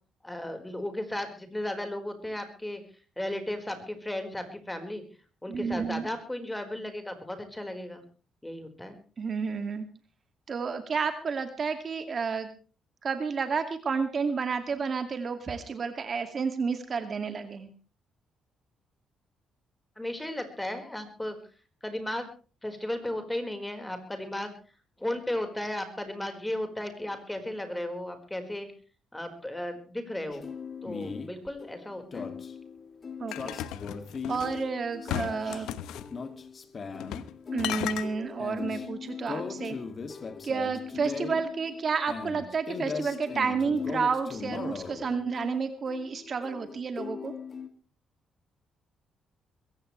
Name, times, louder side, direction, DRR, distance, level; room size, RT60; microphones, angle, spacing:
voice 1, 0.2-2.8 3.2-5.0 5.4-8.0 8.4-9.0 20.0-21.4 21.8-22.3 22.6-24.5 25.0-28.7 29.1-30.4 30.8-32.3, left 1 dB, 10° left, 7 dB, 4.5 m, -35 dB
voice 2, 5.5-6.1 9.2-9.9 10.5-12.5 13.0-17.7 33.2-33.6 34.3-35.7 37.5-39.8 40.4-47.3, right 5 dB, 45° right, 8 dB, 2.2 m, -31 dB
sound 1, 30.3-47.7, left 5 dB, 45° left, 2.2 m, -39 dB
sound 2, 33.3-34.6 35.1-36.1 37.0-37.3 37.6-38.1, left 11 dB, 90° left, 1.0 m, -34 dB
22.5 x 16.0 x 3.2 m, 0.36 s
cardioid pair, 90°, 0 cm